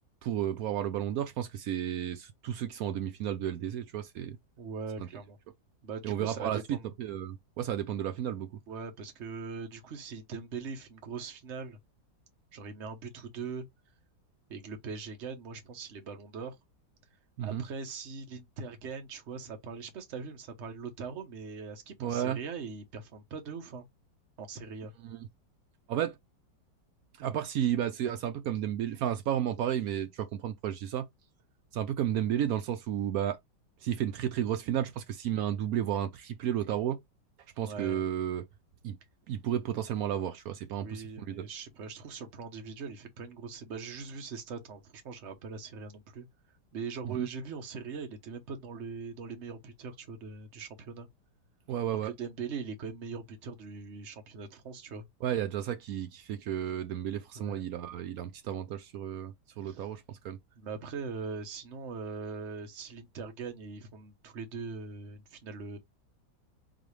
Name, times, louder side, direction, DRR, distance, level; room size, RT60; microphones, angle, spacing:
voice 1, 0.2-4.4 5.0-5.1 6.0-8.6 17.4-17.6 22.0-22.4 25.0-25.2 25.9-26.2 27.2-31.1 31.7-33.4 33.8-37.0 37.6-38.4 38.8-39.0 39.3-41.5 47.0-47.3 51.7-52.1 55.2-60.4, right 10 dB, 70° right, 0.8 m, -32 dB
voice 2, 4.6-5.4 5.8-6.9 8.7-11.8 12.5-13.6 14.5-16.6 17.4-23.8 24.4-24.9 37.6-38.0 40.8-46.3 46.7-51.1 52.0-55.1 57.3-57.6 59.6-59.9 60.6-65.8, right 5 dB, 45° right, 1.0 m, -41 dB
4.0 x 3.2 x 3.2 m
omnidirectional pair, 2.0 m